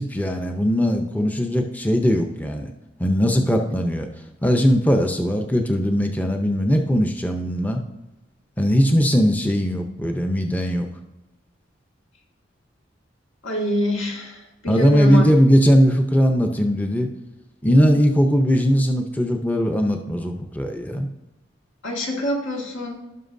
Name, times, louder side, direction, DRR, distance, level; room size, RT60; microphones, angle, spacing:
voice 1, 0.0-2.7 3.0-4.1 4.4-7.8 8.6-10.9 14.7-17.1 17.6-21.1, equal, 10° left, 3 dB, 0.5 m, -19 dB
voice 2, 13.4-15.3 21.8-23.0, left 1 dB, 85° left, -1 dB, 1.9 m, -25 dB
16.5 x 5.9 x 2.6 m, 0.98 s
head